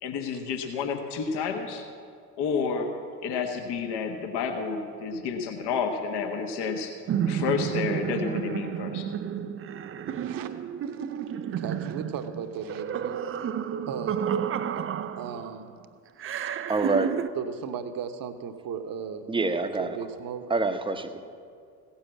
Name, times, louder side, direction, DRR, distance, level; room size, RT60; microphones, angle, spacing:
voice 1, 0.0-1.9 2.4-2.9 3.2-7.0 7.3-9.1, left 5 dB, 55° left, 4 dB, 1.4 m, -30 dB
sound 1, 7.1-15.6 16.2-17.3, right 8 dB, 30° right, 0.5 m, -31 dB
voice 2, 11.6-13.2 13.9-14.3 14.7-14.8 15.2-15.7 16.3-16.5 17.3-19.3 19.8-20.5, right 7 dB, 45° right, 8 dB, 1.1 m, -36 dB
voice 3, 16.4-17.1 19.3-20.0 20.5-21.3, right 3 dB, 10° right, 8 dB, 0.8 m, -27 dB
16.0 x 7.2 x 7.5 m, 2.3 s
figure-of-eight pair, 55°, 48 cm